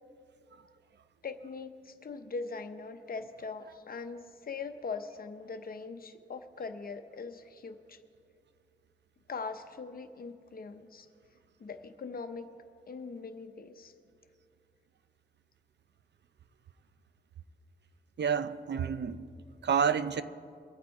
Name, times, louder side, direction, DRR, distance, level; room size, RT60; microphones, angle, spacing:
voice 1, 1.2-8.0 9.3-11.1 11.6-12.5 12.9-13.9, left 4 dB, 50° left, 0.8 m, -41 dB
voice 2, 18.2-19.2 19.6-20.2, right 7 dB, 65° right, 0.5 m, -29 dB
22.5 x 8.7 x 4.7 m
wide cardioid pair, 170°, 19 cm